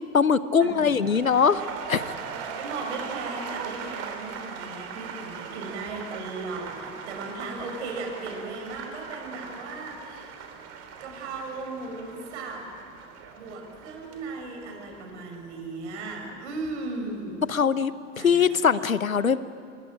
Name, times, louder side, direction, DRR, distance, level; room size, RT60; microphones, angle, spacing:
voice 1, 0.0-1.6 1.9-2.1 17.5-19.4, left 6 dB, 90° left, 16 dB, 1.0 m, -22 dB
voice 2, 0.6-1.2 2.3-10.4 11.0-12.7 13.4-17.4 18.2-18.5, right 3 dB, 60° right, 3 dB, 6.8 m, -36 dB
sound 1, 0.7-16.8 17.1-17.5, right 6 dB, 40° right, 3.6 m, -40 dB
26.0 x 23.0 x 9.0 m, 2.3 s
figure-of-eight pair, 100°, 40 cm